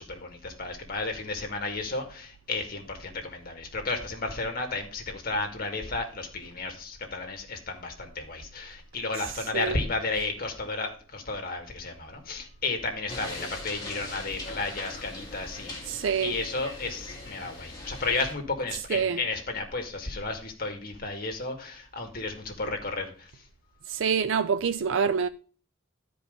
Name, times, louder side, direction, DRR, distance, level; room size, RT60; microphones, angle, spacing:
voice 1, 0.0-15.9 16.2-23.3, left 3 dB, 45° left, 2.3 m, -33 dB
voice 2, 9.2-9.8 15.8-16.3 18.7-19.2 23.9-25.3, right 6 dB, 70° right, 0.5 m, -27 dB
sound 1, 13.1-18.3, left 2 dB, 20° left, 3.1 m, -40 dB
12.5 x 5.1 x 5.2 m
head